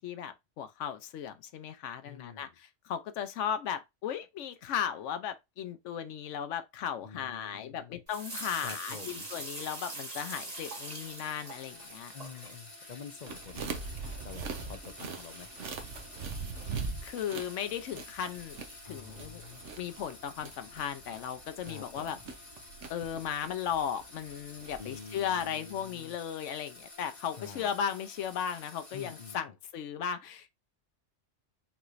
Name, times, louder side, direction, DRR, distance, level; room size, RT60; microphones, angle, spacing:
voice 1, 0.0-12.1 17.0-18.6 18.8-19.5 19.8-22.2 22.9-30.5, left 8 dB, 90° left, 1.0 m, -36 dB
voice 2, 2.0-2.6 7.0-8.0 8.6-9.3 12.1-13.8 14.2-15.5 18.8-19.6 21.6-22.2 24.8-26.2 27.3-27.7 28.9-29.4, left 6 dB, 50° left, 0.6 m, -47 dB
sound 1, 8.1-12.6, right 2 dB, 30° right, 1.6 m, -42 dB
sound 2, 10.5-29.4, left 2 dB, 30° left, 1.5 m, -51 dB
sound 3, 13.3-25.4, right 4 dB, 75° right, 1.2 m, -42 dB
5.5 x 3.1 x 2.5 m
omnidirectional pair, 1.2 m